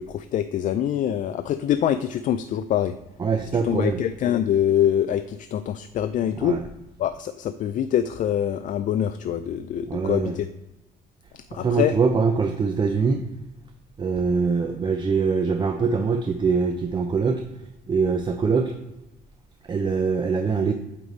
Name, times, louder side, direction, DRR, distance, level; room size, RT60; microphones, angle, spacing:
voice 1, 0.1-3.0 3.6-6.6 7.0-10.5 11.5-11.9, left 10 dB, 50° left, 10 dB, 0.4 m, -24 dB
voice 2, 3.2-4.0 6.4-6.6 9.9-10.3 11.6-13.2 14.0-17.4 17.9-18.7 19.7-20.7, right 5 dB, 25° right, 5 dB, 0.6 m, -23 dB
8.6 x 3.3 x 4.0 m, 0.93 s
cardioid pair, 110°, 17 cm